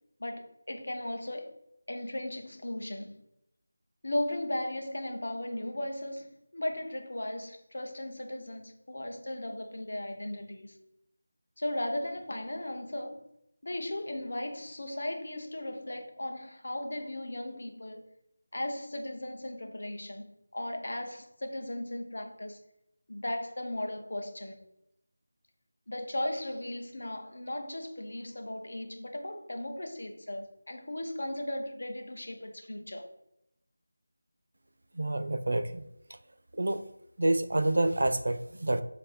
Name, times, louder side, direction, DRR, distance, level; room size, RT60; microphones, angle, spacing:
voice 1, 0.2-1.5 1.9-3.1 4.0-10.8 11.6-13.3 13.6-18.0 18.5-20.3 20.5-22.6 23.1-24.6 25.9-33.1, left 1 dB, 60° left, 5 dB, 0.8 m, -36 dB
voice 2, 35.0-35.9 36.6-36.8 37.2-38.8, right 1 dB, 60° right, 10 dB, 0.3 m, -28 dB
4.1 x 2.7 x 3.4 m, 0.82 s
figure-of-eight pair, 175°, 0 cm